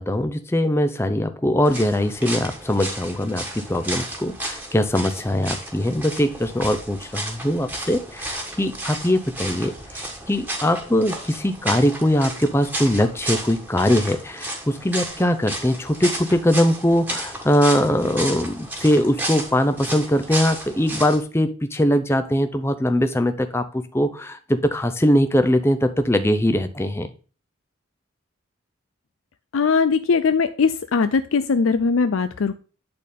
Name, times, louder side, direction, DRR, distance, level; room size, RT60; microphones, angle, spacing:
voice 1, 0.0-27.1, left 1 dB, 10° left, 9 dB, 0.5 m, -21 dB
sound 1, 1.6-21.2, right 1 dB, 10° right, 1.4 m, -33 dB
voice 2, 29.5-32.5, left 5 dB, 85° left, 11 dB, 0.5 m, -20 dB
8.6 x 4.2 x 5.2 m, 0.36 s
head